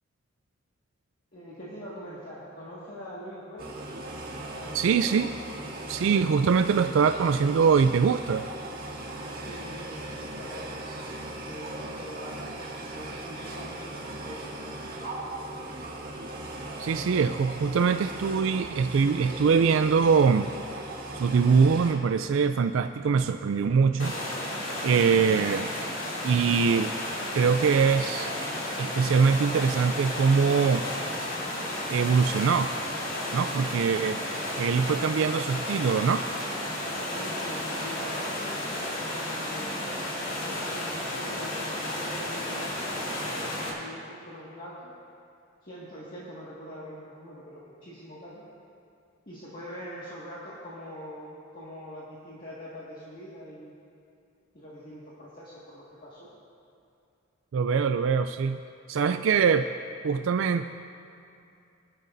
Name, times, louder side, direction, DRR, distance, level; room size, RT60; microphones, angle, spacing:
voice 1, 1.3-3.7 4.6-5.2 9.4-10.8 11.5-12.5 12.8-14.8 15.2-15.8 36.8-42.6 42.9-44.9 45.6-48.4 49.3-53.7 54.5-56.3, equal, 45° left, -8 dB, 1.9 m, -43 dB
sound 1, 3.6-21.9, right 1 dB, 45° right, 1.9 m, -38 dB
voice 2, 4.7-5.3 5.9-8.5 16.8-20.5 21.2-24.1 24.8-25.7 26.2-26.9 27.3-28.3 28.8-30.9 31.9-32.7 33.3-34.2 34.6-36.3 57.5-58.6 58.9-59.7 60.0-60.6, right 5 dB, 70° right, 9 dB, 0.3 m, -23 dB
sound 2, 24.0-43.7, left 1 dB, 70° left, 2.7 m, -33 dB
20.0 x 12.0 x 2.6 m, 2.6 s
head